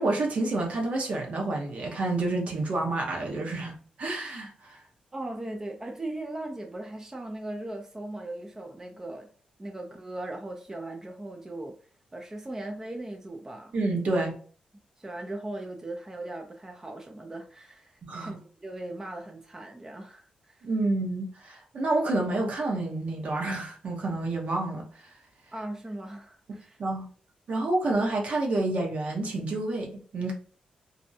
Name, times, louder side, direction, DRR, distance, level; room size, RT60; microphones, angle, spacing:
voice 1, 0.0-4.8 13.7-14.3 18.0-18.4 20.6-24.9 26.8-27.1 27.5-30.3, right 2 dB, 60° right, 0.9 m, -29 dB
voice 2, 5.1-9.3 9.6-11.7 12.1-13.8 15.0-20.7 25.5-26.8, right 1 dB, 20° right, 0.4 m, -38 dB
2.6 x 2.1 x 2.7 m
cardioid pair, 80°, 3 cm